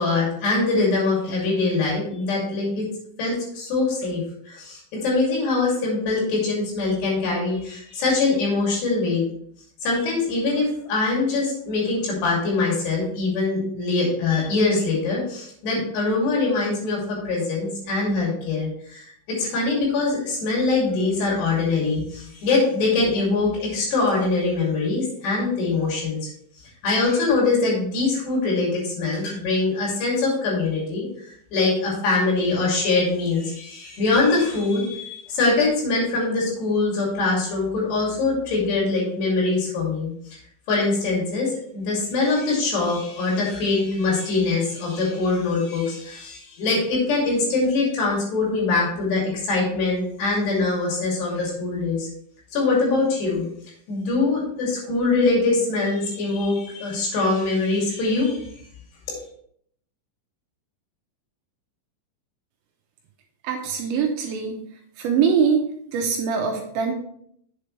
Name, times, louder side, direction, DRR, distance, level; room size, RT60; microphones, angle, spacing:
voice 1, 0.0-2.9 3.2-9.2 9.8-26.2 26.8-31.1 31.5-40.4 40.7-52.1 52.5-53.5 53.9-58.5, left 3 dB, 60° left, -3 dB, 4.5 m, -23 dB
voice 2, 63.4-64.6 65.0-65.6 65.9-66.9, right 6 dB, 75° right, 2 dB, 3.0 m, -22 dB
8.5 x 7.6 x 3.2 m, 0.66 s
omnidirectional pair, 5.8 m